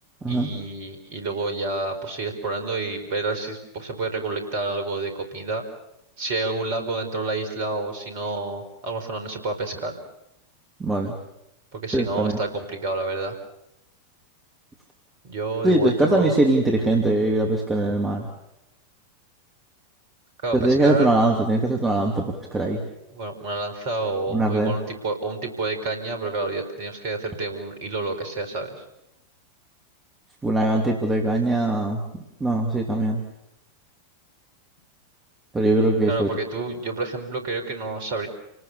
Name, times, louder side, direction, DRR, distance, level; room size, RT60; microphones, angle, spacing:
voice 1, 0.3-5.6 6.2-10.0 11.7-13.4 15.2-16.4 20.4-21.1 23.1-28.8 36.1-38.3, right 3 dB, 50° right, 7 dB, 4.8 m, -29 dB
voice 2, 10.8-11.1 11.9-12.4 15.6-18.3 20.5-22.8 24.3-24.7 30.4-32.0 32.4-33.2 35.5-36.3, right 2 dB, 15° right, 1 dB, 2.9 m, -21 dB
29.5 x 19.5 x 7.0 m, 0.83 s
figure-of-eight pair, 90°, 0 cm